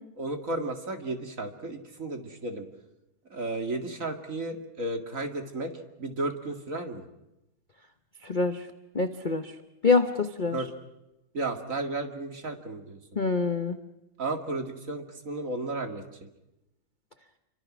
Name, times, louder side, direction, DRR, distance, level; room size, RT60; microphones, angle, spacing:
voice 1, 0.2-2.7 3.3-5.7 6.0-7.0 10.5-10.7 11.3-13.0 14.2-16.3, right 2 dB, 35° right, 5 dB, 2.4 m, -33 dB
voice 2, 8.2-8.6 8.9-9.5 9.8-10.6 13.2-13.8, left 4 dB, 40° left, 8 dB, 0.7 m, -25 dB
29.5 x 24.5 x 6.2 m, 0.92 s
omnidirectional pair, 2.4 m